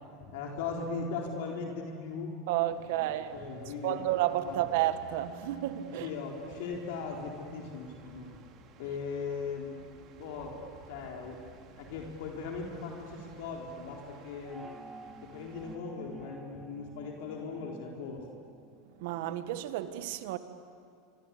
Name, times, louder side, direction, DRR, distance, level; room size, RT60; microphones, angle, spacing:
voice 1, 0.3-2.3 2.8-4.0 4.4-4.6 5.9-8.4 8.8-9.7 10.2-10.6 10.9-11.4 11.8-14.7 15.2-18.2, left 5 dB, 70° left, 4.0 m, -39 dB
voice 2, 2.5-3.4 3.8-6.1 19.0-20.4, right 13 dB, 70° right, 1.6 m, -31 dB
sound 1, 2.7-15.8, right 4 dB, 50° right, 3.3 m, -54 dB
sound 2, 14.4-19.1, right 3 dB, 15° right, 2.8 m, -51 dB
26.0 x 25.5 x 8.5 m
hypercardioid pair, 105°, 0 cm